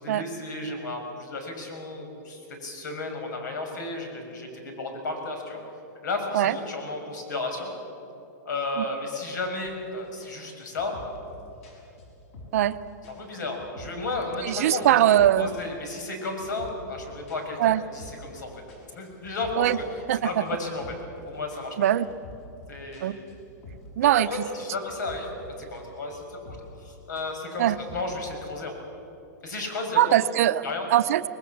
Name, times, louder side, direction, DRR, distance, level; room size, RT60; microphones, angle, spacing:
voice 1, 0.0-5.6 6.0-7.7 8.4-11.0 13.2-15.0 15.4-18.6 18.9-19.8 20.2-20.9 21.3-21.8 22.7-23.2 24.2-25.3 25.6-28.7 29.4-30.2 30.6-30.9, left 2 dB, 85° left, 4 dB, 6.0 m, -33 dB
sound 1, 9.7-9.9 10.2-12.7 13.0-14.5 14.8-15.5 15.9-18.4 18.7-21.2 21.5-24.1 24.3-25.8 26.1-26.8 27.2-28.6, left 1 dB, 45° left, 6.3 m, -47 dB
voice 2, 14.4-15.5 17.6-17.8 19.6-19.8 20.1-20.4 21.8-22.1 23.0-23.1 24.0-24.3 27.6-27.8 30.0-30.6 30.9-31.2, right 12 dB, 50° right, 12 dB, 0.7 m, -21 dB
24.5 x 20.5 x 7.2 m, 2.8 s
supercardioid pair, 175°, 10 cm